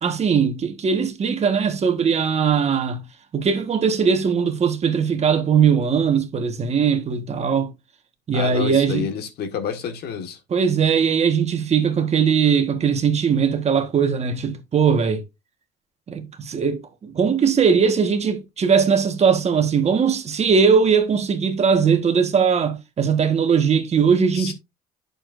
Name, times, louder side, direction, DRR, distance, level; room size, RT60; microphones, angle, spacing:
voice 1, 0.0-3.0 3.3-7.7 8.3-9.1 10.5-15.2 16.1-24.5, right 6 dB, 40° right, 1.4 m, -20 dB
voice 2, 8.3-10.4 24.3-24.5, left 8 dB, 70° left, 1.7 m, -29 dB
8.8 x 6.7 x 2.6 m
cardioid pair, 110°, 17 cm